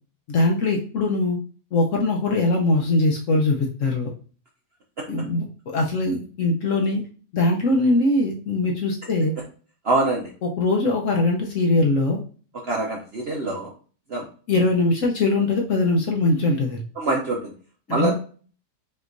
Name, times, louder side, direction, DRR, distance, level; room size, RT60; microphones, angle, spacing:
voice 1, 0.3-1.4 1.7-4.1 5.1-7.0 7.3-9.3 10.6-12.2 14.5-16.8 17.9-18.1, left 2 dB, 60° left, 1 dB, 0.9 m, -21 dB
voice 2, 9.8-10.3 12.7-13.7 14.1-14.3 17.0-17.5 17.9-18.1, right 3 dB, 55° right, -1 dB, 0.7 m, -24 dB
5.5 x 2.9 x 2.5 m, 0.39 s
omnidirectional pair, 1.8 m